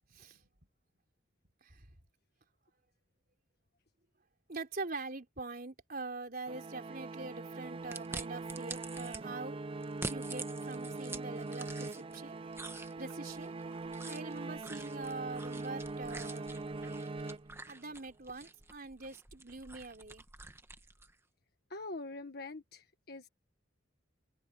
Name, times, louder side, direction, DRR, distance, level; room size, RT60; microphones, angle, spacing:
voice 1, 0.1-0.5 1.6-1.9 4.5-9.6 10.0-12.4 13.0-13.5 14.1-16.5 17.7-20.2, right 3 dB, 50° right, 3.8 m, -44 dB
sound 1, 6.5-17.9, right 3 dB, 30° right, 0.4 m, -42 dB
sound 2, 7.9-9.2 9.8-12.2 12.5-21.1, right 3 dB, 15° right, 1.3 m, -47 dB
voice 2, 21.7-23.3, left 2 dB, 55° left, 1.5 m, -44 dB
head